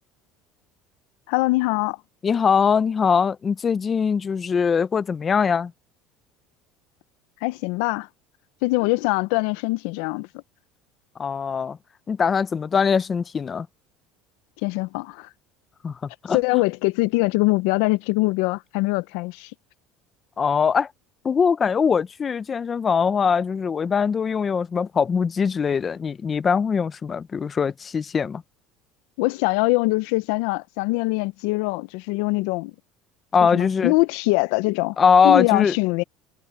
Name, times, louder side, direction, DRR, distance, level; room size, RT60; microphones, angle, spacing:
voice 1, 1.3-2.0 7.4-8.1 8.6-10.3 14.6-15.3 16.3-19.5 29.2-32.7 33.5-35.0 35.2-36.0, left 23 dB, 75° left, 0.6 m, -23 dB
voice 2, 2.2-5.7 11.2-11.8 12.1-13.7 15.8-16.0 16.2-16.6 20.4-20.9 21.2-28.4 33.3-33.9 35.0-35.7, left 6 dB, 20° left, 0.5 m, -21 dB
cardioid pair, 160°, 0 cm